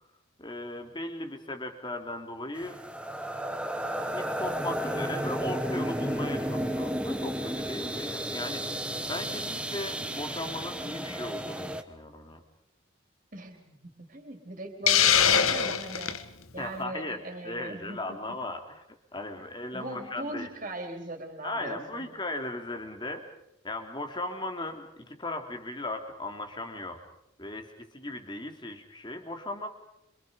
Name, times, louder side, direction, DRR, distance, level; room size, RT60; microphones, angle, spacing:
voice 1, 0.4-2.8 4.1-8.7 9.1-12.4 16.6-18.8 19.1-20.5 21.4-23.3 23.6-27.0 27.4-29.7, left 2 dB, 20° left, 5 dB, 3.0 m, -37 dB
sound 1, 2.6-11.8, equal, 5° right, 1.2 m, -33 dB
voice 2, 13.3-16.2 16.5-18.2 19.4-19.5 19.7-22.1, right 2 dB, 40° right, 4 dB, 4.3 m, -40 dB
Hiss, 14.9-16.2, left 8 dB, 85° left, 1.5 m, -22 dB
27.5 x 27.0 x 5.2 m, 0.80 s
head